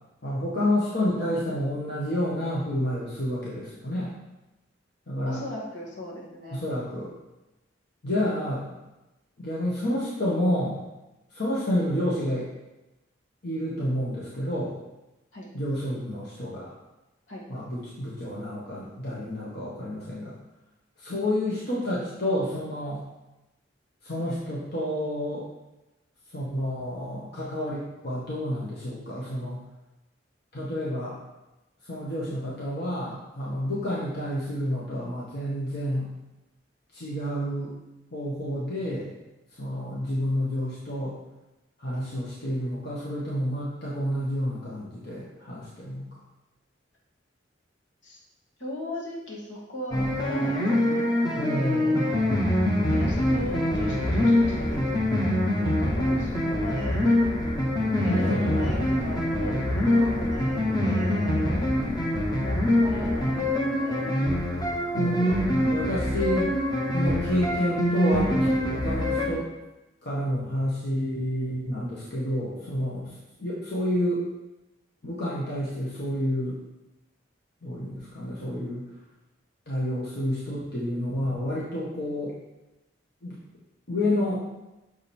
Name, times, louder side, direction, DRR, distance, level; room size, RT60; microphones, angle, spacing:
voice 1, 0.2-4.1 5.1-5.4 6.5-7.1 8.0-8.6 9.4-10.8 11.3-12.5 13.4-14.7 15.5-16.7 17.5-20.3 21.0-23.0 24.0-25.5 26.3-29.6 30.5-31.2 31.9-36.1 36.9-37.8 38.1-39.1 39.6-41.2 41.8-46.1 51.4-52.1 58.1-58.8 59.8-60.2 63.0-63.1 64.9-66.5 66.9-69.5 70.0-74.2 75.0-76.6 77.6-78.8 79.7-82.3 83.2-83.4 83.9-84.4, left 1 dB, 60° left, -7 dB, 1.4 m, -29 dB
voice 2, 5.3-6.6 15.3-15.5 17.3-17.4 48.0-48.2 48.6-52.4 52.9-54.8 55.6-57.0 57.8-61.5 62.4-64.1, left 1 dB, 80° left, -5 dB, 2.3 m, -38 dB
sound 1, 49.9-69.3, left 1 dB, 20° left, 1.0 m, -24 dB
6.8 x 5.2 x 4.4 m, 0.99 s
head